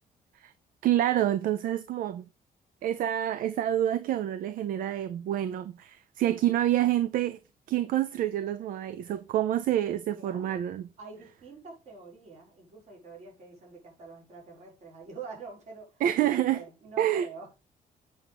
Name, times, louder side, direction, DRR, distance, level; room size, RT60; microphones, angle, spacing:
voice 1, 0.8-2.3 2.8-7.4 7.7-10.9 16.0-16.6 17.0-17.3, right 12 dB, 65° right, 0.6 m, -27 dB
voice 2, 10.2-10.6 11.0-17.6, right 4 dB, 50° right, 5.5 m, -46 dB
7.9 x 6.1 x 5.2 m
cardioid pair, 175°, 15 cm